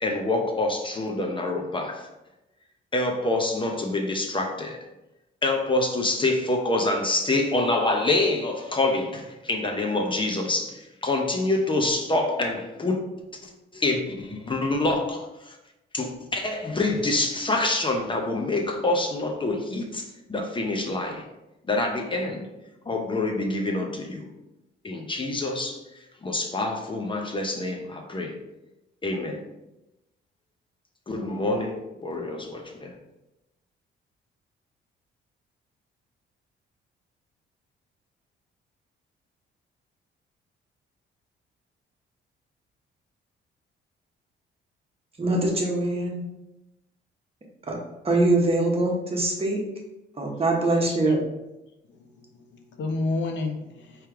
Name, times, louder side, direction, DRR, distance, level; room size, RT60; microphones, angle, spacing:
voice 1, 0.0-2.1 2.9-4.8 5.4-13.0 13.4-15.6 15.9-21.3 21.7-22.5 22.9-24.3 24.8-28.4 29.0-29.4 31.1-32.9, left 2 dB, 25° left, 2 dB, 0.7 m, -26 dB
voice 2, 45.2-46.2 47.7-47.8 48.0-49.6 50.2-51.2, right 2 dB, 30° right, 0 dB, 1.1 m, -23 dB
voice 3, 51.9-54.1, left 3 dB, 65° left, 4 dB, 0.7 m, -31 dB
3.4 x 3.0 x 4.6 m, 0.95 s
cardioid pair, 90°, 20 cm